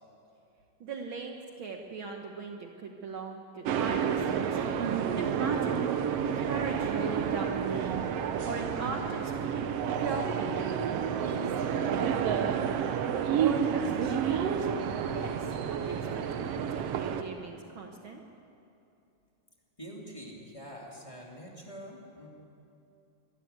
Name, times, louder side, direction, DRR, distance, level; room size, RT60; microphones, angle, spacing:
voice 1, 0.8-4.8 5.1-5.9 6.3-9.3 10.0-10.7 11.2-12.6 13.1-14.7 15.0-18.2, right 4 dB, 90° right, 3 dB, 1.1 m, -39 dB
sound 1, 3.7-17.2, right 8 dB, 75° right, 1.5 m, -30 dB
voice 2, 19.8-22.3, equal, 10° left, -3 dB, 2.4 m, -45 dB
23.0 x 12.5 x 9.5 m, 2.7 s
omnidirectional pair, 3.9 m